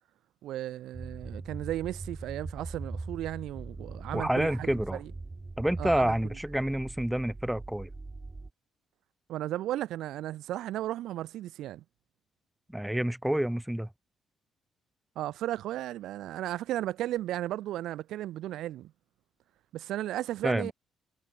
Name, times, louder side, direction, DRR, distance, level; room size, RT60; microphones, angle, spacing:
voice 1, 0.4-5.1 5.8-6.1 9.3-11.8 15.2-18.9 19.7-20.7, right 13 dB, 85° right, 0.6 m, -35 dB
sound 1, 0.9-8.5, right 3 dB, 20° right, 5.2 m, -41 dB
voice 2, 4.1-5.0 5.6-7.9 12.7-13.9 20.4-20.7, right 1 dB, 5° right, 2.0 m, -28 dB
cardioid pair, 90°, 0 cm